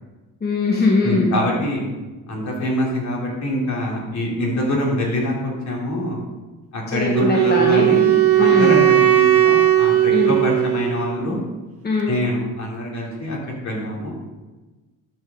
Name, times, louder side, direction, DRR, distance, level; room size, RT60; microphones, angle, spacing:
voice 1, 0.4-1.4 6.9-7.9 8.4-8.9 10.1-10.3 11.8-12.1, left 3 dB, 30° left, -2 dB, 1.3 m, -20 dB
voice 2, 1.0-1.8 2.3-6.2 6.7-11.4 12.1-14.2, left 1 dB, 55° left, -3 dB, 3.3 m, -24 dB
Wind instrument woodwind instrument, 7.1-11.2, right 12 dB, 45° right, 0.8 m, -16 dB
12.0 x 6.8 x 3.8 m, 1.2 s
cardioid pair, 120°, 34 cm